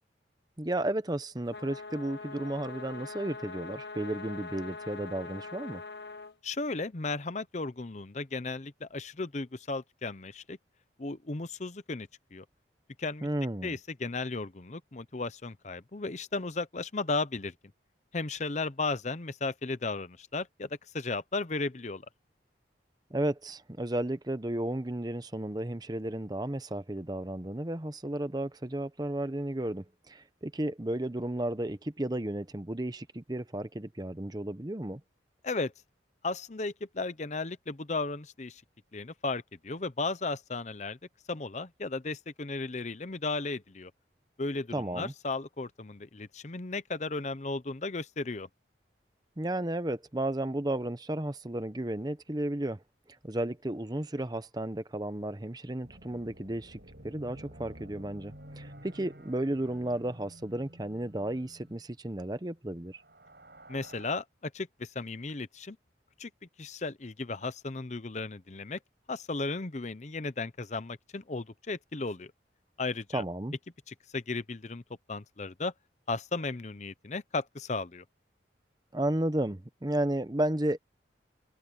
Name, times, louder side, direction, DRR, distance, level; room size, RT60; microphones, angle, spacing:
voice 1, 0.6-5.8 13.2-13.8 23.1-35.0 44.7-45.1 49.4-52.8 53.2-56.8 57.0-63.0 73.1-73.5 78.9-80.8, right 1 dB, 20° right, 0.8 m, -33 dB
sound 1, 1.5-6.3, left 4 dB, 65° left, 1.0 m, -43 dB
voice 2, 6.4-10.6 11.0-12.4 13.0-13.3 13.6-17.5 18.1-20.7 20.9-22.1 35.4-35.7 36.2-38.6 38.9-41.0 41.3-43.9 44.4-48.5 63.7-65.8 66.2-66.3 66.6-68.8 69.1-72.3 72.8-73.2 73.9-74.8 75.1-75.7 76.1-78.0, left 3 dB, 40° left, 0.8 m, -35 dB
sound 2, 55.8-61.8 62.9-64.1, right 1 dB, 60° right, 7.4 m, -51 dB
head